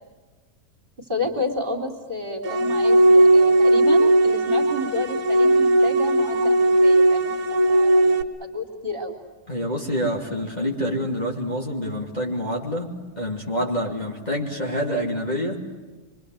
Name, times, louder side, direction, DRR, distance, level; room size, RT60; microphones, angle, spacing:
voice 1, 1.1-9.2, left 1 dB, 35° right, 3 dB, 3.7 m, -30 dB
sound 1, 2.4-8.2, right 1 dB, 60° right, 2.0 m, -17 dB
voice 2, 9.5-15.7, equal, 30° left, -1 dB, 2.9 m, -27 dB
26.0 x 24.5 x 7.8 m, 1.3 s
omnidirectional pair, 1.6 m